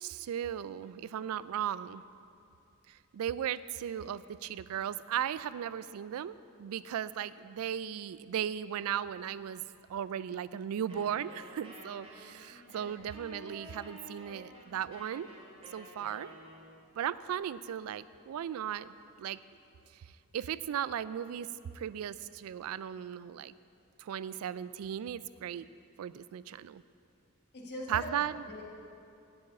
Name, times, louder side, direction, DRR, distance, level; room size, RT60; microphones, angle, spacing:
voice 1, 0.0-2.0 3.1-6.3 6.6-9.6 9.9-15.3 15.7-16.3 17.0-18.9 19.2-19.4 20.3-21.5 21.7-23.5 24.0-25.6 26.0-26.8 27.9-28.4, right 9 dB, 70° right, 16 dB, 0.3 m, -36 dB
Wind instrument woodwind instrument, 10.9-16.9, equal, 25° right, 2.2 m, -51 dB
voice 2, 27.5-28.6, left 1 dB, 50° left, -3 dB, 1.5 m, -43 dB
7.9 x 7.1 x 8.2 m, 2.6 s
head